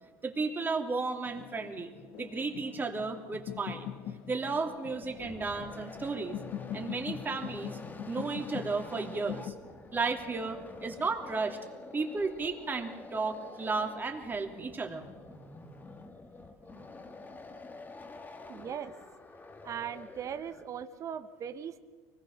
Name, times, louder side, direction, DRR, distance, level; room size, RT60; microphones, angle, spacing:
voice 1, 0.2-3.9 4.3-6.4 6.7-7.8 8.1-9.5 9.9-11.6 11.9-15.1, right 4 dB, 20° right, 3 dB, 3.0 m, -34 dB
sound 1, 1.2-9.5, left 9 dB, 60° left, 1.8 m, -43 dB
sound 2, 4.7-20.8, left 3 dB, 20° left, 2.2 m, -48 dB
voice 2, 18.5-18.9 19.6-21.8, right 8 dB, 40° right, 10 dB, 1.2 m, -39 dB
24.0 x 19.5 x 6.7 m, 1.4 s
supercardioid pair, 95°, 9 cm